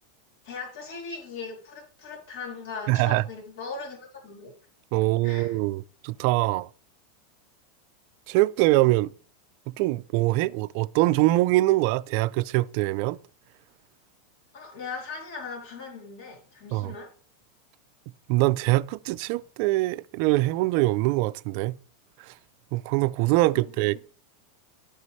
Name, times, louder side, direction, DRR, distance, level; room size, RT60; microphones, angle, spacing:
voice 1, 0.4-4.5 5.2-5.6 14.5-17.1 23.5-24.0, left 4 dB, 65° left, 4.1 m, -39 dB
voice 2, 2.9-3.2 4.9-6.7 8.3-9.1 9.7-13.2 16.7-16.9 18.3-21.8 22.2-22.3 22.7-24.0, right 18 dB, 50° right, 0.3 m, -23 dB
12.0 x 5.5 x 3.1 m
supercardioid pair, 155°, 0 cm